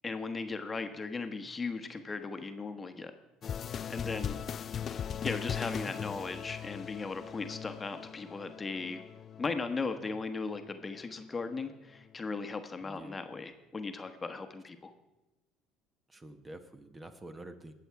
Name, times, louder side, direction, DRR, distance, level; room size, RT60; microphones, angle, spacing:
voice 1, 0.0-3.1 3.9-4.4 5.2-9.0 9.4-14.9, left 4 dB, 25° left, 7 dB, 1.2 m, -37 dB
sound 1, 3.4-11.1, left 8 dB, 45° left, 0.4 m, -40 dB
voice 2, 4.6-5.0 12.8-13.2 16.1-17.7, right 1 dB, 25° right, 8 dB, 1.2 m, -49 dB
20.0 x 7.0 x 4.8 m, 1.0 s
hypercardioid pair, 70°, 0 cm